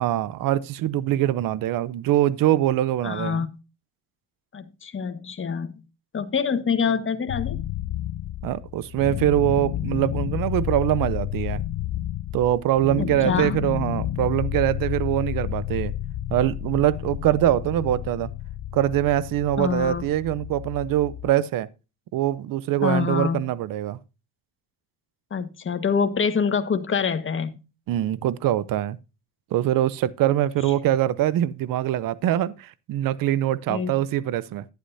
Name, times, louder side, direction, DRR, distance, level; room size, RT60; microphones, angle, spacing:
voice 1, 0.0-3.4 8.4-11.6 12.3-15.9 16.3-18.3 18.7-21.7 22.1-24.0 27.9-29.0 29.5-34.6, right 13 dB, 65° right, 0.9 m, -23 dB
voice 2, 3.0-3.5 4.5-5.8 6.1-7.6 13.0-13.6 19.6-20.0 22.8-23.4 25.3-27.6 33.7-33.9, left 6 dB, 35° left, 1.6 m, -25 dB
sound 1, 7.3-21.3, left 13 dB, 50° left, 0.5 m, -31 dB
11.5 x 9.6 x 2.7 m
supercardioid pair, 80°, 37 cm